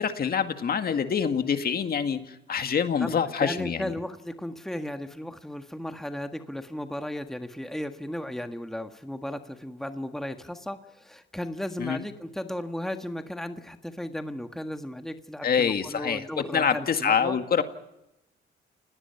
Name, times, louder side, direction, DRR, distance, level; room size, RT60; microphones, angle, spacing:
voice 1, 0.0-3.9 11.8-12.0 15.4-16.2 16.5-17.6, left 7 dB, 50° left, 8 dB, 1.9 m, -26 dB
voice 2, 3.0-17.4, left 1 dB, ahead, 7 dB, 1.6 m, -35 dB
30.0 x 18.0 x 5.8 m, 0.89 s
cardioid pair, 90°, 20 cm